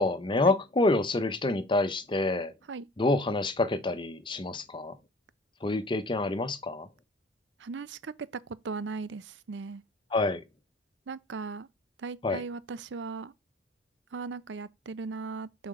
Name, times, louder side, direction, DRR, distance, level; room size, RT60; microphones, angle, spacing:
voice 1, 0.0-2.5 3.0-5.0 5.6-6.9 10.1-10.4 12.2-12.4, left 2 dB, 30° left, 0.7 m, -27 dB
voice 2, 7.6-8.3 8.6-9.8 11.1-11.7 12.0-13.3 14.1-15.7, right 4 dB, 90° right, 0.5 m, -38 dB
5.8 x 4.2 x 4.8 m
head